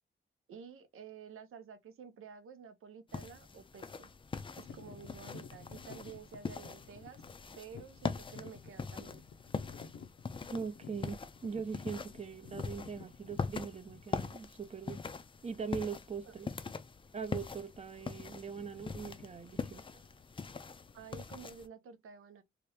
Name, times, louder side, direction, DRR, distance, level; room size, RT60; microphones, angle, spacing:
voice 1, 0.5-4.1 4.6-7.2 7.6-9.2 16.2-16.3 20.9-22.4, right 6 dB, 85° right, 0.7 m, -51 dB
sound 1, 3.1-21.7, left 4 dB, 25° left, 0.4 m, -43 dB
sound 2, 4.6-14.4 15.0-15.2 15.8-16.0 16.3-16.5 17.2-17.8 18.0-21.4, left 6 dB, 75° left, 0.6 m, -54 dB
voice 2, 10.5-15.0 15.4-16.5 17.1-20.0, right 6 dB, 30° right, 0.6 m, -41 dB
2.9 x 2.5 x 3.3 m
wide cardioid pair, 120°, 21 cm